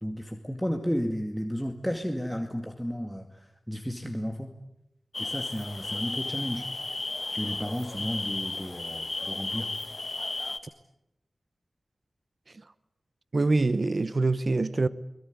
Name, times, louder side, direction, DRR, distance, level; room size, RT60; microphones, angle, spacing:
voice 1, 0.0-4.5 5.2-6.7 7.3-9.7, equal, ahead, 2.2 m, -33 dB
sound 1, 5.1-10.6, left 3 dB, 50° left, 1.9 m, -34 dB
voice 2, 13.3-14.9, right 3 dB, 55° right, 1.1 m, -24 dB
23.5 x 21.5 x 9.6 m
cardioid pair, 45°, 0 cm